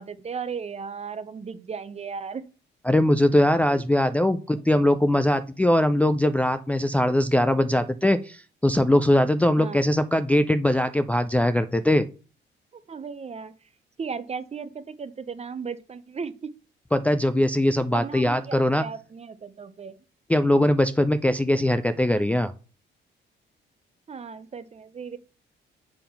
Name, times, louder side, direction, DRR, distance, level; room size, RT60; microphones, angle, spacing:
voice 1, 0.0-2.4 9.6-9.8 12.9-13.5 14.0-16.5 17.9-20.0 24.1-25.2, right 5 dB, 30° right, 13 dB, 0.7 m, -36 dB
voice 2, 2.8-12.0 16.9-18.8 20.3-22.5, left 1 dB, 5° left, 8 dB, 0.4 m, -21 dB
6.8 x 3.7 x 5.7 m, 0.36 s
cardioid pair, 90°, 20 cm